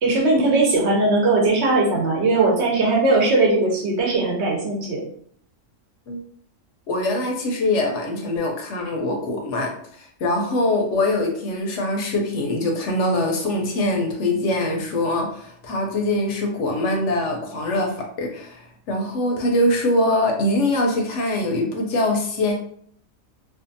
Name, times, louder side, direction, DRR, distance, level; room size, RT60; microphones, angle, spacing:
voice 1, 0.0-5.0, right 2 dB, 65° right, -1 dB, 0.9 m, -19 dB
voice 2, 6.9-22.5, left 1 dB, 70° left, 1 dB, 0.8 m, -23 dB
2.6 x 2.3 x 2.5 m, 0.62 s
omnidirectional pair, 1.4 m